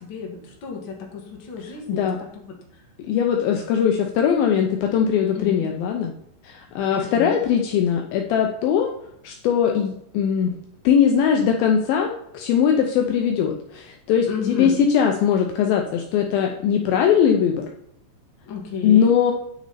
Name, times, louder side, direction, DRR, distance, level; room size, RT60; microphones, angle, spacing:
voice 1, 0.0-2.0 2.3-2.8 5.3-5.6 6.9-7.3 14.2-14.7 18.4-19.1, left 5 dB, 50° left, 0 dB, 1.5 m, -32 dB
voice 2, 3.1-6.1 6.4-8.9 9.2-10.5 10.8-17.7 18.8-19.3, left 8 dB, 90° left, 2 dB, 2.0 m, -20 dB
9.6 x 6.1 x 4.2 m, 0.74 s
omnidirectional pair, 5.1 m